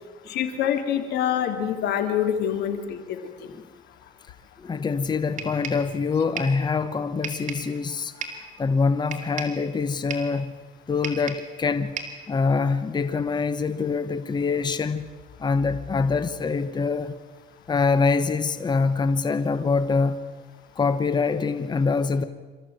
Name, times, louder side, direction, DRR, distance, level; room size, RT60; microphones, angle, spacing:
voice 1, 0.3-3.2, left 9 dB, 80° left, 2.8 m, -25 dB
voice 2, 4.6-10.5 10.9-12.0 12.3-15.1 15.4-17.1 17.7-20.2 20.8-22.2, left 4 dB, 25° left, 1.1 m, -24 dB
sound 1, 5.4-5.9 6.4-6.6 7.2-7.7 8.2-8.5 9.1-9.6 10.1-10.4 11.0-11.5 12.0-12.3, right 5 dB, 50° right, 3.6 m, -34 dB
26.5 x 14.5 x 9.2 m
cardioid pair, 110°, 17 cm